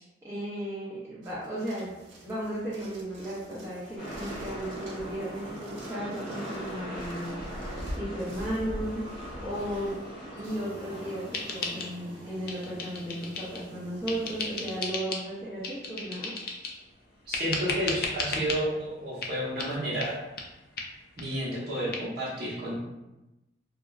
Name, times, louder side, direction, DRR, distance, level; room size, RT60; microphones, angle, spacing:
voice 1, 0.2-1.9 2.2-7.3 8.0-9.0 9.4-10.0 10.3-16.3, right 1 dB, 15° right, -9 dB, 0.4 m, -35 dB
sound 1, 1.2-15.0, equal, 75° right, 0.5 m, -45 dB
sound 2, 4.0-16.0 16.3-16.4, equal, 25° left, 1.4 m, -42 dB
sound 3, 11.3-12.2 12.5-13.7 14.1-15.3 15.6-16.8 17.3-18.6 19.2-19.3 19.6-19.7 20.0-20.1 20.4-20.5 20.8-20.9 21.2-21.3 21.6-21.7 21.9-22.0, left 4 dB, 50° left, 0.3 m, -34 dB
voice 2, 17.3-20.2 21.2-22.8, equal, 55° right, -6 dB, 0.9 m, -31 dB
2.9 x 2.3 x 2.3 m, 0.99 s
head